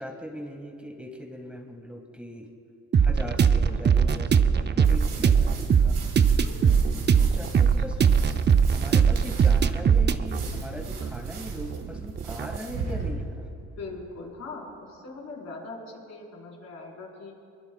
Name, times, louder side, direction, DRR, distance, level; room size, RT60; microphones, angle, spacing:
voice 1, 0.0-2.5 3.0-6.0 7.1-8.2 8.7-13.5, equal, 5° right, 0 dB, 1.9 m, -39 dB
sound 1, 2.9-12.6, right 6 dB, 35° right, 0.6 m, -21 dB
sound 2, 4.8-13.1, right 4 dB, 85° right, 4.0 m, -38 dB
voice 2, 6.4-6.9 13.8-17.4, left 3 dB, 60° left, -3 dB, 4.6 m, -41 dB
22.5 x 22.0 x 2.4 m, 2.6 s
cardioid pair, 90°, 30 cm